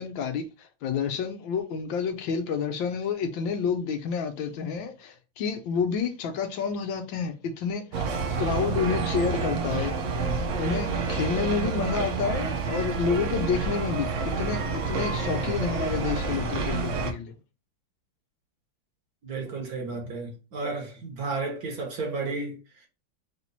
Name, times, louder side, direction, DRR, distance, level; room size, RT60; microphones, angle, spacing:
voice 1, 0.0-8.1 8.4-10.0 10.6-14.1 14.4-17.3, left 6 dB, 75° left, 1.4 m, -29 dB
sound 1, 7.9-17.1, right 4 dB, 85° right, 0.6 m, -29 dB
voice 2, 19.2-22.9, right 3 dB, 50° right, 1.5 m, -33 dB
4.1 x 2.9 x 4.0 m
omnidirectional pair, 2.2 m